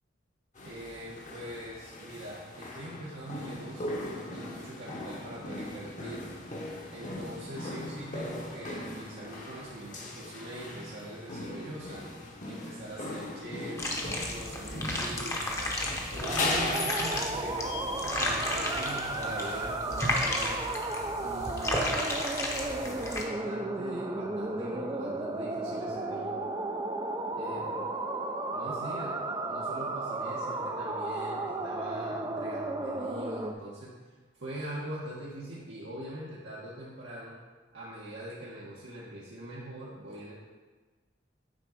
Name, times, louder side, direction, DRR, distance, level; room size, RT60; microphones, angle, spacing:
sound 1, 0.6-19.7, left 2 dB, 40° left, 1.0 m, -39 dB
voice 1, 0.6-6.4 6.9-12.1 12.4-15.7 16.1-20.6 21.2-22.3 22.6-26.4 27.4-27.8 28.5-29.1 29.5-33.9 34.3-37.3 37.7-40.3, right 1 dB, 80° right, -8 dB, 1.3 m, -42 dB
sound 2, 13.8-23.2, left 1 dB, 15° left, 0.8 m, -33 dB
sound 3, 16.2-33.5, right 2 dB, 20° right, 0.4 m, -34 dB
9.0 x 3.8 x 5.0 m, 1.3 s
head